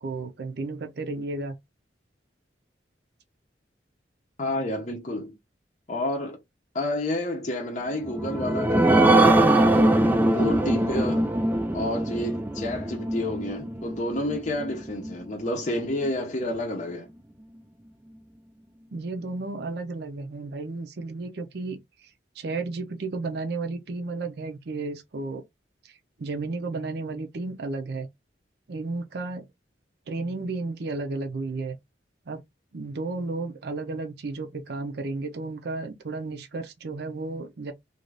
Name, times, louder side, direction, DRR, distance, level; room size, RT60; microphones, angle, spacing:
voice 1, 0.0-1.6 4.4-4.5 18.9-25.4 25.8-28.1 28.7-29.5 30.1-31.8 32.3-32.4 32.7-37.7, right 3 dB, 60° right, 0.5 m, -33 dB
voice 2, 4.4-5.3 5.9-6.4 6.7-9.4 9.7-10.0 10.3-11.3 11.7-17.1, left 1 dB, 40° left, 0.6 m, -30 dB
sound 1, 8.0-15.1 15.6-15.7 16.0-16.1, right 1 dB, 10° right, 0.3 m, -22 dB
2.5 x 2.4 x 3.2 m
head